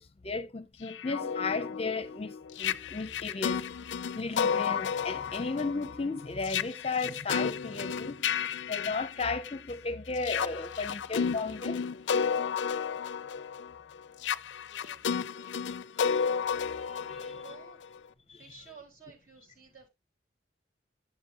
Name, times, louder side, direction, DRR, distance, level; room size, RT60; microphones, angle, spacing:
voice 1, 0.0-3.7 4.1-8.3 8.7-11.8 16.0-17.4 18.3-18.6, left 3 dB, 35° left, 0.6 m, -35 dB
sound 1, 0.9-9.7 10.2-18.0, left 7 dB, 80° left, 0.4 m, -32 dB
voice 2, 14.6-15.7 17.0-17.8 18.3-19.9, right 5 dB, 50° right, 3.9 m, -54 dB
10.5 x 6.7 x 2.8 m
head